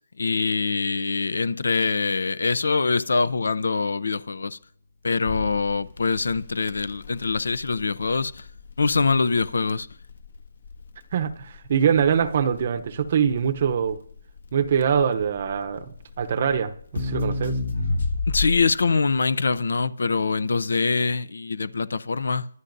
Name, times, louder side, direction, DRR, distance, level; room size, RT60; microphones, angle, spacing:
voice 1, 0.2-4.6 5.0-8.4 8.8-9.9 18.3-22.5, left 4 dB, 75° left, 0.6 m, -24 dB
Crackle, 5.3-18.8, left 2 dB, 60° left, 1.6 m, -31 dB
voice 2, 11.1-14.0 14.5-15.9 16.2-17.6, right 7 dB, 35° right, 0.7 m, -23 dB
23.5 x 11.0 x 2.6 m
hypercardioid pair, 170°, 0 cm